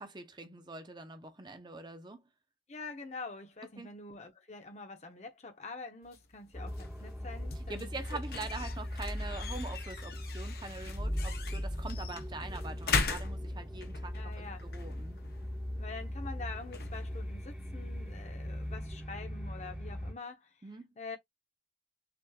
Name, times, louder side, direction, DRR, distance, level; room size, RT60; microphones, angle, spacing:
voice 1, 0.0-2.2 3.8-3.9 7.7-15.2 20.6-20.9, right 3 dB, 25° right, 0.7 m, -44 dB
voice 2, 2.7-8.2 14.1-14.7 15.8-20.5 21.0-21.2, left 3 dB, 40° left, 0.9 m, -45 dB
sound 1, 6.0-18.8, left 4 dB, 60° left, 0.9 m, -41 dB
sound 2, 6.5-20.1, equal, 5° right, 1.4 m, -39 dB
5.9 x 3.1 x 2.3 m
head